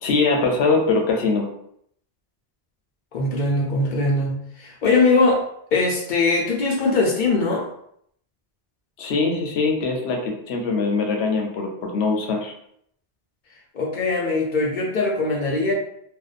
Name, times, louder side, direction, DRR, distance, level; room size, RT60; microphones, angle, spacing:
voice 1, 0.0-1.5 9.0-12.5, left 4 dB, 85° left, 2 dB, 0.8 m, -22 dB
voice 2, 3.1-5.4 5.7-7.6 13.7-15.7, left 3 dB, 55° left, -1 dB, 0.7 m, -21 dB
2.6 x 2.1 x 2.4 m, 0.70 s
omnidirectional pair, 1.1 m